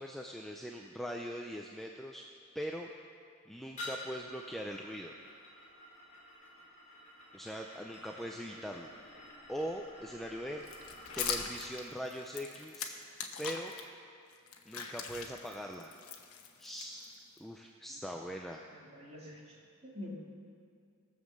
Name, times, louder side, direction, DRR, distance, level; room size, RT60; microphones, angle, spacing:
voice 1, 0.0-2.2 2.5-2.9 3.5-5.1 7.3-8.9 9.5-10.6 11.1-13.0 13.4-13.7 14.7-15.9 16.6-18.7, equal, ahead, 1 dB, 0.4 m, -41 dB
sound 1, 3.8-11.6, left 1 dB, 35° left, 3.0 m, -50 dB
sound 2, 10.6-13.8 14.3-17.4, left 7 dB, 80° left, 1.1 m, -41 dB
voice 2, 18.7-19.5 19.8-20.1, left 1 dB, 30° right, -4 dB, 2.5 m, -46 dB
18.0 x 7.3 x 6.5 m, 2.3 s
head